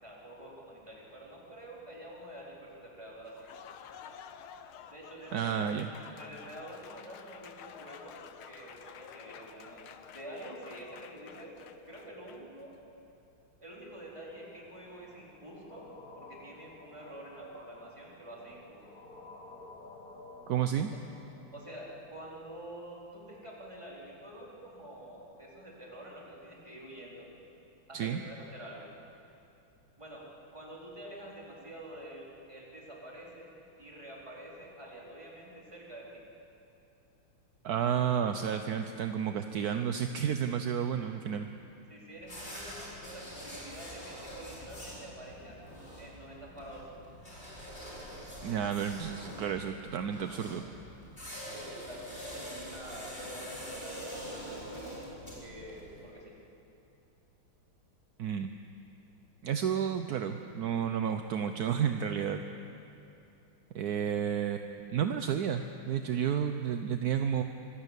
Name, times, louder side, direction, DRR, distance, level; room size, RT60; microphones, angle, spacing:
voice 1, 0.0-3.4 4.9-5.7 6.2-11.6 11.9-12.7 13.6-15.9 16.2-19.0 21.5-27.3 27.9-28.9 30.0-30.3 30.5-33.5 33.8-36.2 41.9-45.6 46.0-47.0 51.5-56.3, right 1 dB, 15° right, -4 dB, 4.2 m, -47 dB
Applause, 3.2-12.6, left 8 dB, 75° left, 1.7 m, -50 dB
voice 2, 5.3-5.9 20.5-20.9 27.9-28.2 37.6-41.5 48.4-50.6 58.2-58.5 59.4-62.4 63.7-67.4, right 8 dB, 65° right, 7 dB, 1.0 m, -31 dB
sound 1, 13.9-21.4, left 2 dB, 45° left, 2.2 m, -53 dB
sound 2, 42.2-56.0, equal, 25° left, 5.0 m, -45 dB
25.0 x 17.5 x 8.3 m, 2.8 s
omnidirectional pair, 2.3 m